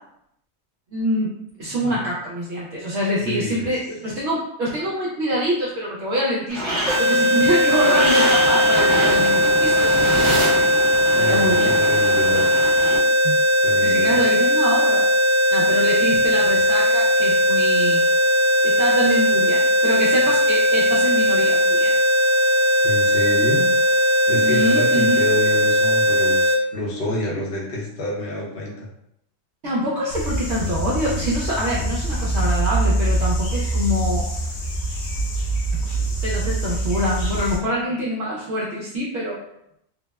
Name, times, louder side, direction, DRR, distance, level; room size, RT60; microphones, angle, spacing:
voice 1, 0.9-1.3 1.6-10.6 11.2-11.7 13.2-13.4 13.8-15.1 15.5-18.0 18.6-21.9 24.4-25.2 29.6-34.3 35.8-39.4, equal, 65° right, -5 dB, 0.8 m, -25 dB
voice 2, 3.2-3.7 11.1-12.4 13.6-14.2 22.8-23.6 23.9-28.9, left 1 dB, 55° left, -4 dB, 0.9 m, -28 dB
sound 1, 6.5-13.0, right 1 dB, 50° right, 1.1 m, -26 dB
sound 2, 6.9-26.6, left 1 dB, 30° left, 0.9 m, -18 dB
sound 3, 30.1-37.6, right 1 dB, 80° left, 1.0 m, -24 dB
3.4 x 2.0 x 2.2 m, 0.76 s
omnidirectional pair, 1.4 m